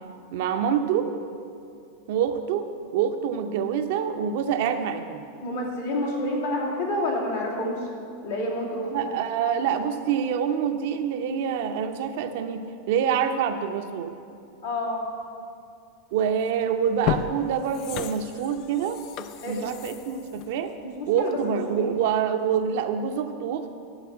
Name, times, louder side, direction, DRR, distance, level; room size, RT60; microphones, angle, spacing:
voice 1, 0.3-1.1 2.1-2.7 2.9-5.2 8.9-14.1 16.1-19.0 19.5-20.7 21.1-23.7, right 8 dB, 60° right, 7 dB, 0.7 m, -26 dB
voice 2, 5.4-7.8 8.2-9.1 14.6-15.1 19.4-19.7 20.8-21.9, left 1 dB, 75° left, -4 dB, 2.6 m, -29 dB
sound 1, 16.3-16.4 16.9-21.6 22.0-22.1, left 11 dB, 45° left, 0.4 m, -34 dB
12.0 x 4.2 x 8.2 m, 2.5 s
figure-of-eight pair, 90°, 0 cm